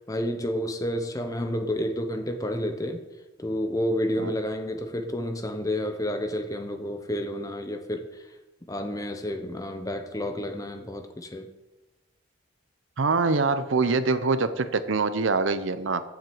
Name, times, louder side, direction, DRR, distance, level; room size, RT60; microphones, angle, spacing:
voice 1, 0.0-3.0 3.4-8.2 8.7-11.5, left 1 dB, 15° left, 7 dB, 0.8 m, -30 dB
voice 2, 13.0-16.0, right 4 dB, 80° right, 12 dB, 0.7 m, -24 dB
7.6 x 7.3 x 7.8 m, 1.1 s
head